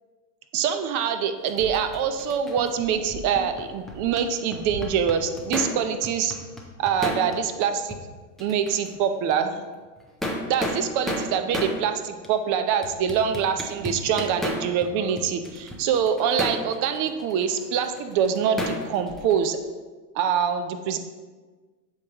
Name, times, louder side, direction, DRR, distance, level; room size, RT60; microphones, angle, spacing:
voice 1, 0.5-6.3 6.8-8.0 8.4-9.7 10.5-19.6 20.1-21.0, right 7 dB, 40° right, 8 dB, 0.7 m, -25 dB
sound 1, 1.5-4.2 4.5-5.8 6.0-7.6 7.9-8.0 8.4-9.0 9.3-9.4 10.0-11.8 12.2-12.3 12.8-14.9 15.2-19.5, left 1 dB, ahead, 0.3 m, -33 dB
8.3 x 6.5 x 2.9 m, 1.4 s
supercardioid pair, 120°, 49 cm